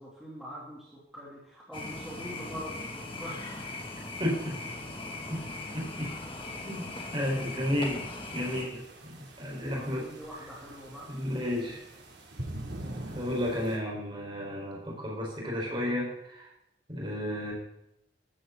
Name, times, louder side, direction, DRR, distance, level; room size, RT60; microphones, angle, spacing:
voice 1, 0.0-3.4 9.7-11.1, equal, ahead, -7 dB, 3.1 m, -43 dB
sound 1, 1.7-8.7, left 2 dB, 30° left, 2.4 m, -39 dB
voice 2, 4.2-4.6 5.3-5.4 5.7-6.1 6.6-6.8 7.1-8.0 8.3-10.1 11.1-11.8 13.1-16.5 16.9-17.5, left 1 dB, 30° right, -2 dB, 4.9 m, -32 dB
sound 2, 8.3-13.8, right 1 dB, 75° right, 3.2 m, -43 dB
14.0 x 14.0 x 4.1 m, 0.82 s
head